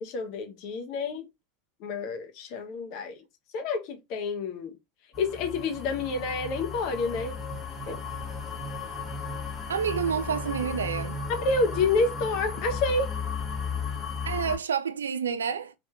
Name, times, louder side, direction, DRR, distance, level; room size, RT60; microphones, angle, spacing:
voice 1, 0.0-1.2 1.8-3.2 3.5-4.8 5.2-7.4 7.9-8.0 11.3-13.2, left 3 dB, 55° left, 1.0 m, -29 dB
sound 1, 5.1-14.6, left 5 dB, 25° left, 1.2 m, -35 dB
voice 2, 9.7-11.2 14.2-15.7, right 7 dB, 80° right, 0.3 m, -29 dB
3.4 x 3.1 x 2.3 m
figure-of-eight pair, 80°, 0 cm